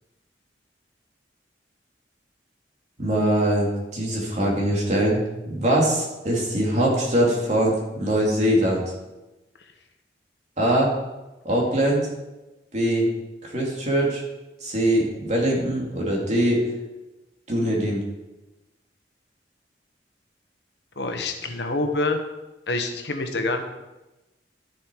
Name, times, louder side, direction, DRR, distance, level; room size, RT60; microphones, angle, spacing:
voice 1, 3.0-8.8 10.6-10.9 11.4-12.1 12.7-13.1 13.4-14.2 14.6-16.6 17.5-18.0, right 1 dB, 40° right, -3 dB, 2.8 m, -22 dB
voice 2, 21.0-22.2 22.7-23.6, left 2 dB, 70° left, 5 dB, 1.3 m, -26 dB
11.5 x 7.3 x 4.8 m, 1.0 s
head